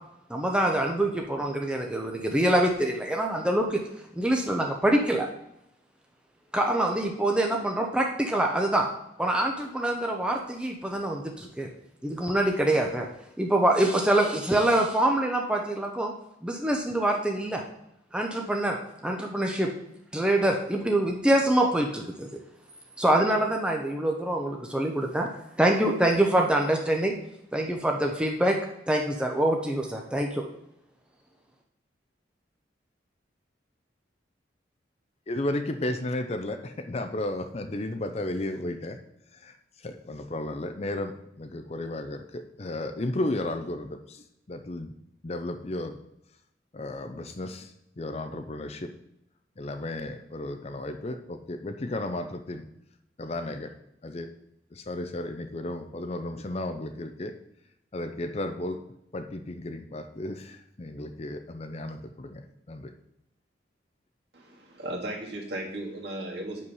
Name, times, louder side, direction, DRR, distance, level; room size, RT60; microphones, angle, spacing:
voice 1, 0.3-3.8 4.2-5.3 6.5-8.9 9.2-11.7 12.0-13.1 13.4-16.1 16.4-17.6 18.1-18.8 19.0-19.7 20.1-22.3 23.0-25.3 25.6-27.1 27.5-28.6 28.9-30.4, right 1 dB, 5° right, 1 dB, 0.7 m, -25 dB
voice 2, 35.3-39.0 39.3-44.9 45.2-46.0 46.7-48.9 49.6-52.6 53.2-53.7 54.0-54.3 54.7-57.3 57.9-58.8 59.1-62.4 62.7-62.9, left 1 dB, 35° left, 7 dB, 0.6 m, -34 dB
voice 3, 64.3-66.7, right 1 dB, 60° right, -2 dB, 2.0 m, -36 dB
8.2 x 5.3 x 5.5 m, 0.82 s
head